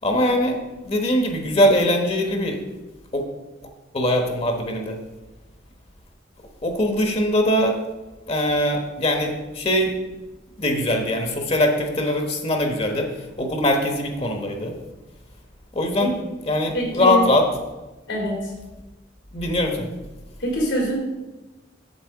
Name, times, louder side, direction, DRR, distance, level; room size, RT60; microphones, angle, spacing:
voice 1, 0.0-0.6 0.8-2.6 3.1-3.2 3.9-5.0 6.6-7.8 8.3-9.9 10.6-13.1 13.4-14.7 15.7-16.1 16.5-17.5 19.3-19.9, left 1 dB, 35° left, 4 dB, 1.1 m, -21 dB
voice 2, 16.7-17.2 18.1-18.5 20.4-20.9, equal, 85° left, -1 dB, 2.9 m, -24 dB
8.3 x 7.4 x 4.8 m, 1.1 s
head